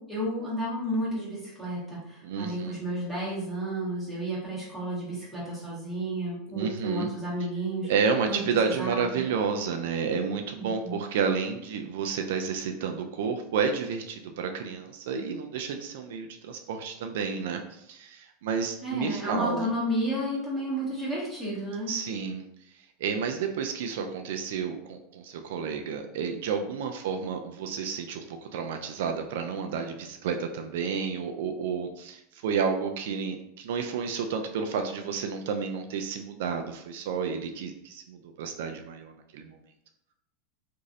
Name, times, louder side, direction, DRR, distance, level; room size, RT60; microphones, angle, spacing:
voice 1, 0.0-7.9 8.3-9.3 10.6-11.0 18.8-22.0, right 1 dB, ahead, -9 dB, 1.5 m, -32 dB
voice 2, 2.2-2.7 6.5-7.1 7.8-19.7 21.9-22.4 23.0-39.6, right 6 dB, 75° right, 5 dB, 0.3 m, -31 dB
3.0 x 2.6 x 2.7 m, 0.79 s
supercardioid pair, 130°, 0 cm